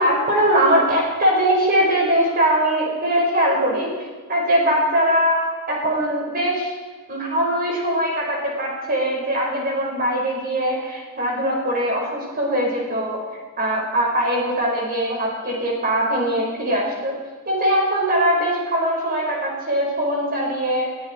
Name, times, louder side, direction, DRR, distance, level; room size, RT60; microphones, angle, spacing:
voice 1, 0.0-3.9 4.3-6.7 7.1-13.2 13.6-17.1 17.5-20.9, equal, 45° right, -2 dB, 5.3 m, -21 dB
21.0 x 14.0 x 4.6 m, 1.4 s
head